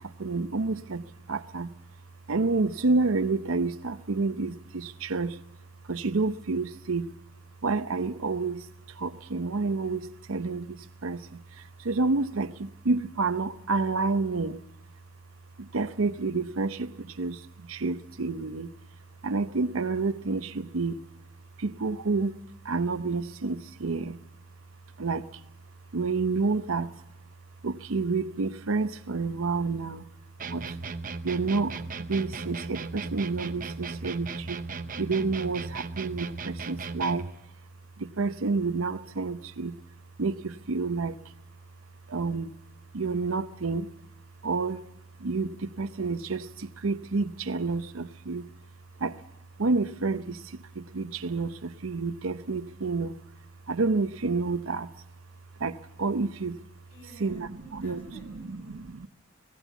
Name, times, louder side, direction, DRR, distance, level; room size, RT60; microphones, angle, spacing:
voice 1, 0.0-1.7 2.3-5.4 5.8-7.1 7.6-14.6 15.6-18.7 19.2-21.0 21.6-22.4 22.6-24.2 25.0-25.3 25.9-26.9 27.6-30.1 30.5-30.8 31.2-34.6 35.0-37.3 38.0-39.8 40.2-41.2 42.1-42.5 42.9-43.9 44.4-44.8 45.2-48.5 49.0-49.2 49.6-53.2 53.7-54.9 55.6-56.6 57.2-58.0 58.5-59.1, right 3 dB, 75° right, 10 dB, 0.8 m, -29 dB
sound 1, 30.4-37.4, right 4 dB, 40° right, 0.8 m, -37 dB
voice 2, 56.9-58.7, right 2 dB, 30° left, 3 dB, 7.1 m, -51 dB
19.0 x 16.5 x 8.2 m, 0.87 s
head